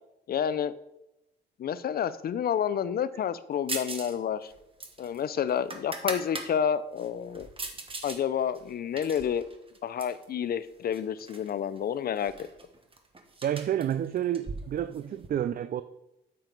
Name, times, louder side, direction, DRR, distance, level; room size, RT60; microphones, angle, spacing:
voice 1, 0.3-0.7 1.6-4.5 5.0-7.5 8.0-9.4 9.8-12.3, left 8 dB, 50° left, 0.5 m, -29 dB
sound 1, 3.7-4.1 4.4-6.5 7.0-8.2 8.5-10.2 10.9-11.5 11.8-11.9 12.2-15.3, right 3 dB, 25° right, 1.4 m, -39 dB
voice 2, 13.4-15.8, right 10 dB, 50° right, 0.4 m, -29 dB
8.7 x 7.6 x 4.0 m
cardioid pair, 90°, 20 cm